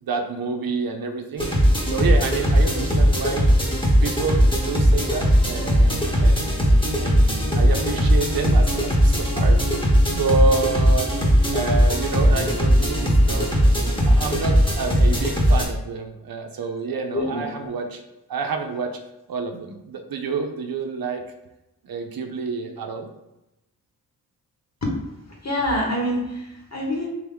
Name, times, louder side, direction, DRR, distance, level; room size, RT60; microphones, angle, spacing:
voice 1, 0.0-1.5 1.9-3.5 4.0-6.7 7.0-11.1 11.5-13.5 14.0-18.0 18.3-19.0 19.3-21.2 21.8-23.1, right 4 dB, 65° right, 4 dB, 0.6 m, -28 dB
sound 1, 1.4-15.7, equal, 10° left, 1.1 m, -18 dB
voice 2, 17.1-17.7 24.8-24.9 25.3-27.1, left 1 dB, 40° left, -1 dB, 1.5 m, -26 dB
3.7 x 3.0 x 3.8 m, 0.91 s
cardioid pair, 45°, 39 cm